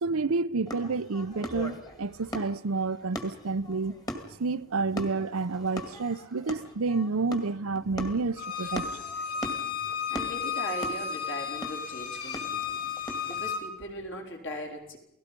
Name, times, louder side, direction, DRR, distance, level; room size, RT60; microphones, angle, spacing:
voice 1, 0.0-4.0 4.4-8.9, right 4 dB, 75° right, 0.7 m, -29 dB
sound 1, 0.7-13.4, equal, 15° left, 2.0 m, -40 dB
Bowed string instrument, 8.4-13.6, left 6 dB, 85° left, 3.6 m, -33 dB
voice 2, 10.1-15.0, equal, 55° left, 4.2 m, -39 dB
29.0 x 18.5 x 5.3 m
head